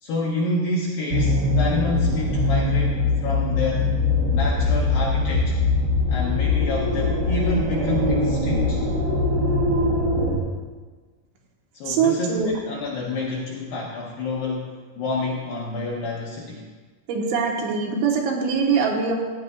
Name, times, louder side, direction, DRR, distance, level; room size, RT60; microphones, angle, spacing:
voice 1, 0.0-3.9 4.3-5.6 6.1-8.8 11.7-16.7, left 2 dB, 80° left, -3 dB, 2.1 m, -28 dB
sound 1, 1.1-10.4, left 2 dB, 70° right, 2.1 m, -22 dB
voice 2, 11.9-12.5 17.1-19.2, right 5 dB, 85° right, 0 dB, 3.5 m, -22 dB
15.0 x 9.5 x 2.4 m, 1.4 s
omnidirectional pair, 5.3 m